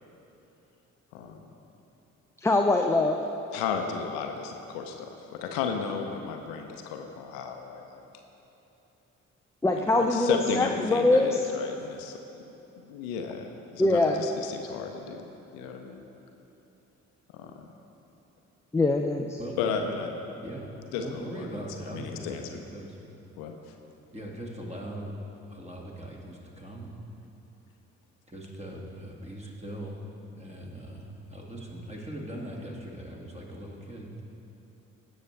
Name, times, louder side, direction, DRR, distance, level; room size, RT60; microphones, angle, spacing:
voice 1, 1.1-1.5 3.5-8.0 9.8-12.4 12.8-16.0 17.3-17.5 19.6-20.1 20.9-21.5 21.8-22.6 23.4-23.6, left 6 dB, 70° left, 4 dB, 0.8 m, -34 dB
voice 2, 2.4-3.2 9.6-11.4 13.8-14.2 18.7-19.4, left 2 dB, 5° left, 2 dB, 0.4 m, -23 dB
voice 3, 19.4-19.9 20.4-23.0 24.1-25.2 25.5-27.0 28.3-30.1 30.4-34.2, right 1 dB, 15° right, -2 dB, 2.0 m, -40 dB
16.0 x 6.3 x 3.3 m, 3.0 s
figure-of-eight pair, 45°, 39 cm